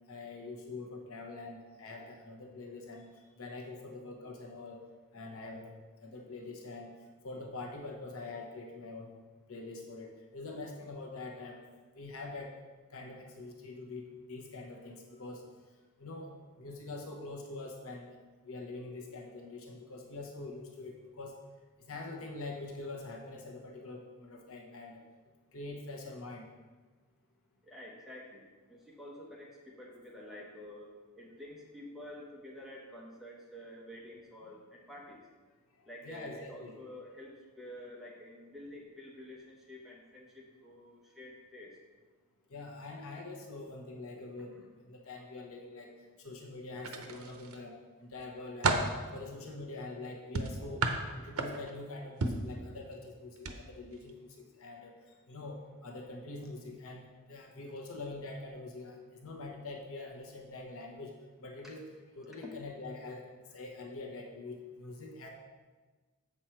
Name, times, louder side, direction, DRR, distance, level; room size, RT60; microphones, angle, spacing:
voice 1, 0.1-4.8 5.1-5.7 6.0-6.9 7.2-9.1 9.5-11.6 11.9-12.5 12.9-15.4 16.0-18.2 18.4-21.3 21.9-25.0 25.5-26.5 36.0-36.8 42.5-45.9 46.2-48.8 49.1-50.8 51.1-54.9 55.3-61.1 61.4-61.9 62.1-63.2 63.5-65.3, left 2 dB, 70° left, 1 dB, 1.0 m, -44 dB
voice 2, 27.6-28.4 28.7-35.2 35.9-41.8 44.5-44.7 49.5-49.9 50.6-50.8 62.4-62.5, left 1 dB, ahead, -4 dB, 1.2 m, -49 dB
sound 1, 46.8-47.6 48.1-49.0 50.3-51.8 52.2-52.5 53.4-53.6 53.9-54.1, right 3 dB, 75° right, 0.8 m, -32 dB
8.0 x 6.1 x 4.5 m, 1.3 s
head